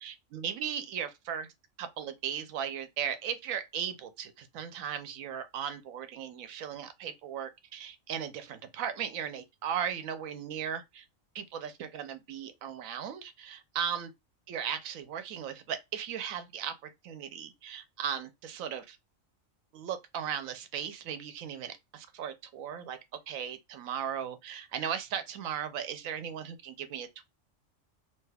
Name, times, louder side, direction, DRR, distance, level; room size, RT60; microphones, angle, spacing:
voice 1, 0.0-1.5 1.8-11.1 11.3-14.1 14.5-16.7 17.0-19.0 19.7-23.0 23.3-27.2, right 8 dB, 85° right, 1.0 m, -37 dB
2.9 x 2.3 x 3.2 m
omnidirectional pair, 1.4 m